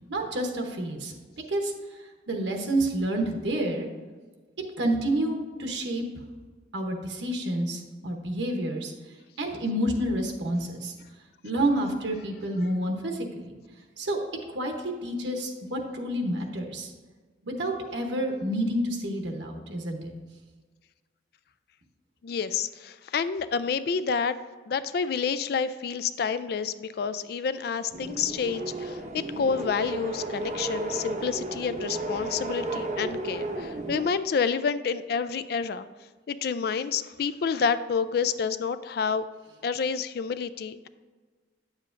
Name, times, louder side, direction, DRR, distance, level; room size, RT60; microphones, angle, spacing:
voice 1, 0.1-1.1 1.5-1.7 2.3-3.9 4.8-6.0 6.7-8.9 9.4-10.9 11.4-13.6 14.0-14.2 14.5-16.9 17.4-20.1, right 1 dB, 80° right, 2 dB, 0.9 m, -29 dB
voice 2, 22.2-24.3 24.7-35.9 36.3-39.3 39.6-40.9, left 6 dB, 55° left, 13 dB, 0.3 m, -29 dB
sound 1, 27.9-34.1, right 2 dB, 40° right, 0.7 m, -33 dB
9.5 x 7.3 x 2.5 m, 1.4 s
head